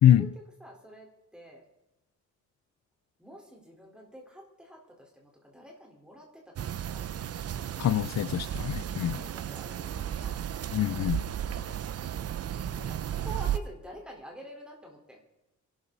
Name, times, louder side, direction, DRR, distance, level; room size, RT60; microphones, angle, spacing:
voice 1, 0.2-1.6 3.2-7.1 8.9-10.5 12.7-15.2, equal, 5° right, 4.1 m, -48 dB
sound 1, 6.6-13.6, right 10 dB, 55° right, 0.6 m, -34 dB
voice 2, 7.8-9.1 10.7-11.2, left 11 dB, 65° left, 0.5 m, -24 dB
27.5 x 12.5 x 4.0 m
wide cardioid pair, 155°, 30 cm